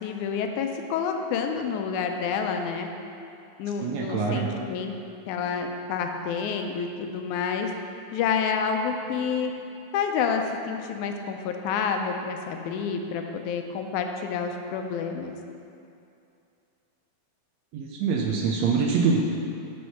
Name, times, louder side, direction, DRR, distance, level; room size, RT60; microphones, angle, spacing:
voice 1, 0.0-2.9 3.6-4.9 5.3-7.7 8.1-9.5 9.9-15.4, left 6 dB, 85° left, 4 dB, 2.0 m, -29 dB
voice 2, 3.8-4.5 17.7-19.2, right 5 dB, 75° right, 0 dB, 1.6 m, -24 dB
6.4 x 5.5 x 5.7 m, 2.6 s
omnidirectional pair, 3.4 m